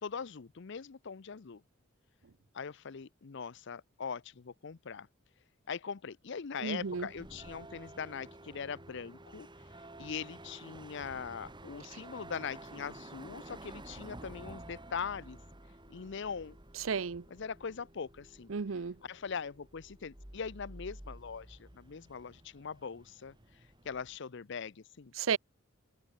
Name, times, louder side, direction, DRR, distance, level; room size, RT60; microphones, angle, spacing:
voice 1, 0.0-1.6 2.5-5.1 5.7-9.5 10.0-15.4 15.9-16.6 17.3-18.5 19.0-23.4 23.8-25.1, left 6 dB, 60° left, 0.6 m, -41 dB
voice 2, 6.6-7.1 16.8-17.2 18.5-18.9 25.2-25.4, right 6 dB, 80° right, 0.6 m, -33 dB
sound 1, 6.8-24.2, right 1 dB, 25° right, 3.9 m, -51 dB
head